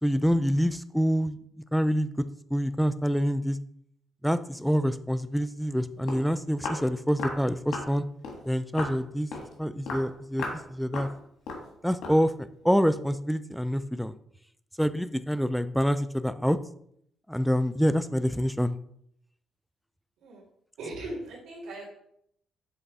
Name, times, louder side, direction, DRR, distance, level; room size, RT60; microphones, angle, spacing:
voice 1, 0.0-1.4 1.7-2.3 2.5-3.6 4.2-8.0 8.5-9.3 9.6-11.1 11.8-12.3 12.6-14.2 14.8-16.6 17.3-18.8, equal, ahead, 13 dB, 0.3 m, -26 dB
Walk footsteps, 5.7-5.8 6.1-6.3 6.6-6.8 7.2-7.4 7.7-7.9 8.2-8.4 8.8-9.0 9.3-9.5 9.9-10.1 10.4-10.6 10.9-11.1 11.5-11.7 12.0-12.2, left 3 dB, 80° left, 1.4 m, -35 dB
voice 2, 20.8-21.9, right 2 dB, 90° right, -11 dB, 2.6 m, -38 dB
7.3 x 3.4 x 4.1 m, 0.70 s
cardioid pair, 90°, 0 cm